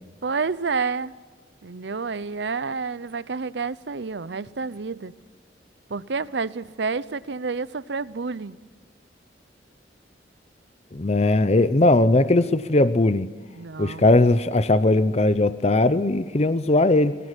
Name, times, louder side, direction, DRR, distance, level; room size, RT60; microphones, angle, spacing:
voice 1, 0.2-1.1 1.6-5.1 5.9-8.6 13.6-14.1, right 4 dB, 70° right, 0.7 m, -29 dB
voice 2, 10.9-13.3 13.8-17.1, left 2 dB, 35° left, 0.7 m, -19 dB
23.0 x 17.5 x 9.8 m
head